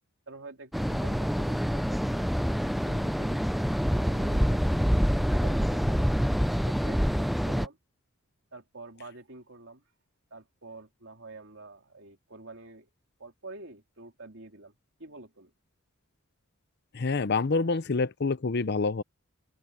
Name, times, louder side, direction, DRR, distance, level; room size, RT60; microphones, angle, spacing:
voice 1, 0.3-2.3 2.8-3.7 4.0-6.1 6.5-7.8 8.5-9.8 10.3-12.9 13.2-14.7 15.0-15.5, right 2 dB, 60° right, 3.3 m, -48 dB
sound 1, 0.7-7.7, equal, ahead, 0.5 m, -26 dB
voice 2, 16.9-19.0, left 4 dB, 50° left, 0.6 m, -27 dB
open air
head